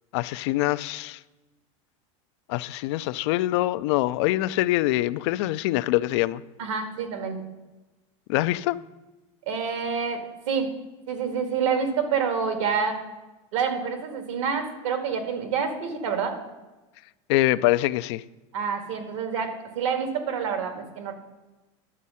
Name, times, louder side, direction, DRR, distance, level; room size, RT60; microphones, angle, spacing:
voice 1, 0.1-1.2 2.5-6.4 8.3-8.8 17.3-18.2, left 17 dB, 65° left, 0.4 m, -24 dB
voice 2, 6.6-7.4 9.5-10.7 11.1-13.0 13.5-16.4 18.5-21.1, right 6 dB, 80° right, 1.9 m, -27 dB
11.0 x 7.4 x 5.6 m
supercardioid pair, 145°, 16 cm